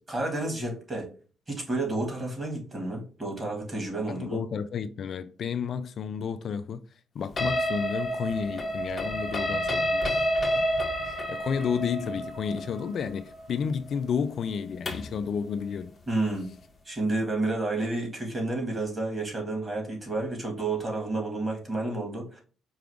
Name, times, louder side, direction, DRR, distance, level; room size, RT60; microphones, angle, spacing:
voice 1, 0.1-1.1 1.5-4.4 16.1-16.5 16.9-22.4, right 2 dB, 25° right, 1.8 m, -30 dB
voice 2, 4.1-6.8 7.1-10.3 10.6-10.7 11.0-15.9, left 6 dB, 60° left, 0.3 m, -31 dB
sound 1, 7.4-15.2, equal, 30° left, 1.0 m, -29 dB
4.7 x 2.4 x 3.5 m
cardioid pair, 90°, 0 cm